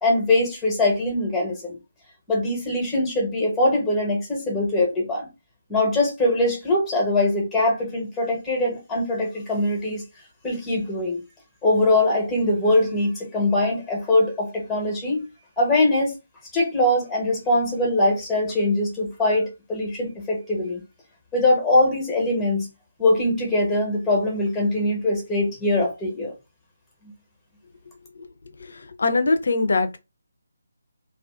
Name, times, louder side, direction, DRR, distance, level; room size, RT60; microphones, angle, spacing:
voice 1, 0.0-1.8 2.3-5.3 5.7-10.0 10.4-11.2 11.6-15.3 15.6-16.1 16.5-20.8 21.3-22.7 23.0-26.3, left 1 dB, 5° left, 0.9 m, -22 dB
voice 2, 28.6-30.0, left 3 dB, 60° left, 0.4 m, -23 dB
2.4 x 2.3 x 2.3 m
figure-of-eight pair, 150°, 0 cm